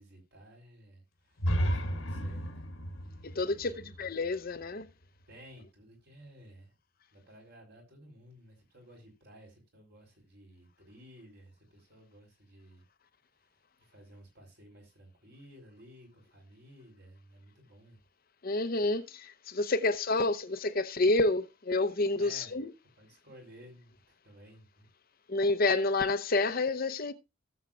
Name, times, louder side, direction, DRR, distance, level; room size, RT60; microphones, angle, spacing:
voice 1, 0.0-2.7 3.2-4.0 5.3-6.8 7.1-12.8 13.8-18.0 22.2-22.6 23.0-24.9, equal, 50° right, 4.2 m, -55 dB
sound 1, 1.4-5.2, equal, 75° left, 1.5 m, -34 dB
voice 2, 3.2-4.9 18.4-22.7 25.3-27.1, left 2 dB, 45° left, 0.8 m, -29 dB
17.0 x 7.4 x 2.5 m
head